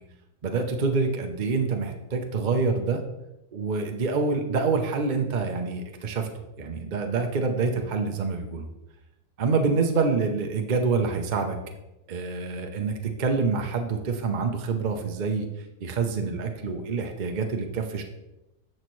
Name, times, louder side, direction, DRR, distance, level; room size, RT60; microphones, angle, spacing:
voice 1, 0.4-3.0 3.5-6.3 6.6-8.7 9.4-11.6 12.1-12.9 13.2-15.5 15.8-18.0, right 4 dB, 50° right, 4 dB, 0.5 m, -26 dB
11.0 x 6.6 x 3.1 m, 0.96 s
omnidirectional pair, 1.8 m